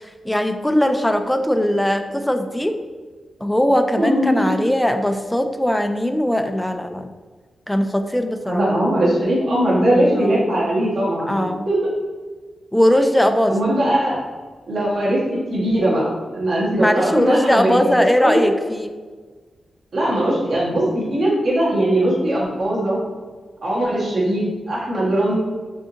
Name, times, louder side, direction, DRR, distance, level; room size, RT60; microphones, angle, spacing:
voice 1, 0.2-2.8 3.4-7.1 7.7-8.6 10.2-10.4 11.3-11.7 12.7-13.5 16.8-18.9, equal, 5° left, 7 dB, 0.3 m, -19 dB
voice 2, 4.0-4.4 8.5-11.8 13.5-14.1 14.7-15.2 15.5-18.5 19.9-23.0 23.6-25.3, right 1 dB, 65° right, -6 dB, 1.4 m, -20 dB
4.9 x 2.7 x 2.6 m, 1.4 s
cardioid pair, 85°, 0 cm